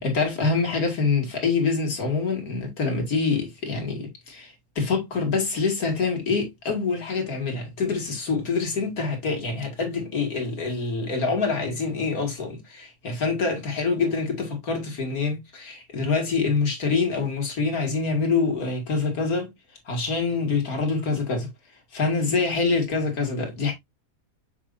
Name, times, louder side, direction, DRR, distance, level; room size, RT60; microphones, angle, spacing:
voice 1, 0.0-19.5 19.9-21.5 21.9-23.7, left 4 dB, 80° left, 2.5 m, -25 dB
6.7 x 6.0 x 2.5 m
omnidirectional pair, 1.5 m